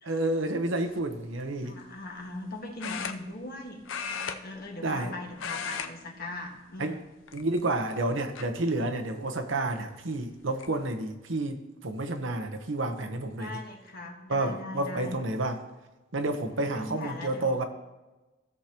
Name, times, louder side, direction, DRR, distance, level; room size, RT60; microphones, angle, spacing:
voice 1, 0.0-1.8 4.8-5.1 6.8-7.0 7.3-13.6 14.3-15.6 16.1-17.6, right 2 dB, 80° right, 6 dB, 1.0 m, -30 dB
sound 1, 0.9-1.2 2.8-3.6 3.9-5.1 5.3-5.9 6.2-6.5 7.2-7.8 8.4-8.5 9.9-10.0 10.3-10.7, left 6 dB, 90° left, 0.6 m, -36 dB
voice 2, 1.6-3.8 4.1-7.0 13.4-15.2 16.5-17.5, left 2 dB, 50° left, 1 dB, 1.6 m, -40 dB
16.5 x 6.5 x 2.9 m, 1.1 s
head